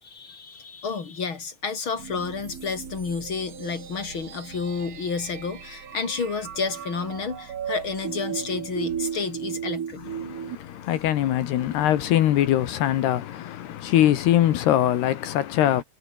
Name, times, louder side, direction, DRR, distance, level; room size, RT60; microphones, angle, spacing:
voice 1, 0.0-10.0, left 5 dB, 30° left, 3.7 m, -30 dB
sound 1, 2.0-13.5, right 6 dB, 40° right, 4.2 m, -46 dB
sound 2, 2.4-10.6, right 8 dB, 75° right, 5.0 m, -36 dB
voice 2, 10.1-15.8, left 12 dB, 75° left, 3.6 m, -22 dB
omnidirectional pair, 4.7 m